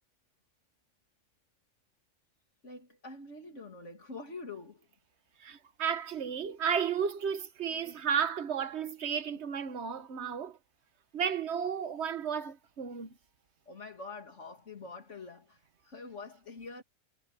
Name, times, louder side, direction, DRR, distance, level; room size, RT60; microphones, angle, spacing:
voice 1, 2.6-4.9 13.7-16.8, left 3 dB, 60° left, 2.7 m, -45 dB
voice 2, 5.4-10.6 11.1-13.1, right 7 dB, 55° right, 1.5 m, -33 dB
omnidirectional pair, 1.4 m